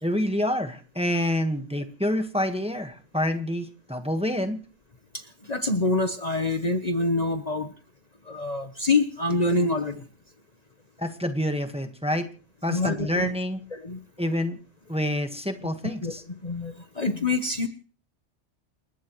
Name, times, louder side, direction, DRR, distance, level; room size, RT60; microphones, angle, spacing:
voice 1, 0.0-4.6 11.0-12.3 12.6-13.6 14.2-14.6 14.9-16.2, left 1 dB, 5° right, 6 dB, 1.4 m, -27 dB
voice 2, 5.4-7.7 8.3-10.0 12.7-13.3 13.7-14.0 16.0-16.1 16.4-17.7, left 2 dB, 35° left, 7 dB, 1.1 m, -26 dB
29.0 x 15.0 x 3.1 m, 0.39 s
omnidirectional pair, 1.2 m